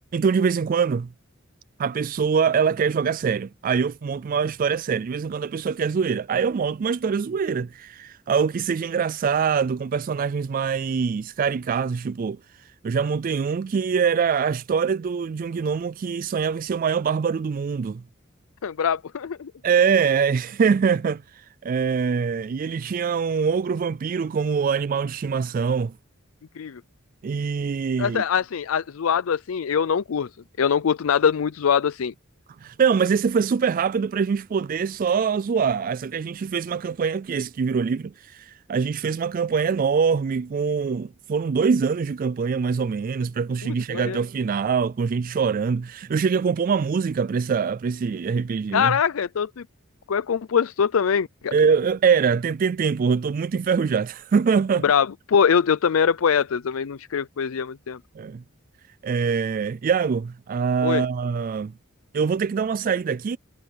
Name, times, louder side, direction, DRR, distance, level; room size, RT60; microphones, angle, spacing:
voice 1, 0.1-1.1 1.8-12.4 12.8-18.0 19.6-25.9 27.2-28.2 32.6-49.0 51.5-54.8 58.2-58.4 59.0-61.7 62.1-63.4, right 6 dB, 40° right, 0.3 m, -24 dB
voice 2, 18.6-19.5 26.6-26.8 28.0-30.3 30.6-32.1 43.6-44.2 48.7-49.6 50.1-51.5 54.8-58.0 60.8-61.0, left 7 dB, 85° left, 0.5 m, -23 dB
head